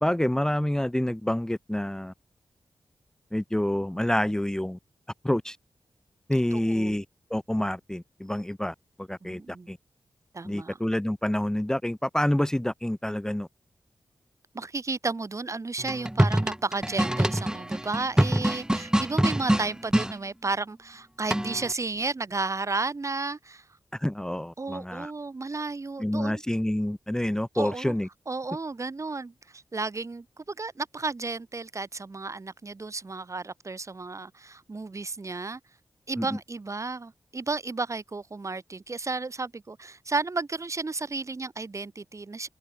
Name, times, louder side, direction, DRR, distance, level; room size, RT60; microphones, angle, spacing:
voice 1, 0.0-2.1 3.3-4.8 5.2-5.6 6.3-7.0 7.3-9.4 9.7-9.8 10.4-13.5 23.9-25.1 26.0-28.1 36.2-36.3, left 1 dB, 5° left, 0.9 m, -27 dB
voice 2, 6.5-7.0 9.2-9.7 10.3-10.8 14.5-23.7 24.6-26.4 27.5-27.9 28.3-35.6 36.1-42.5, right 3 dB, 40° right, 3.0 m, -33 dB
sound 1, 15.8-20.1 21.3-21.7, right 1 dB, 10° right, 3.3 m, -25 dB
wide cardioid pair, 95°, 8 cm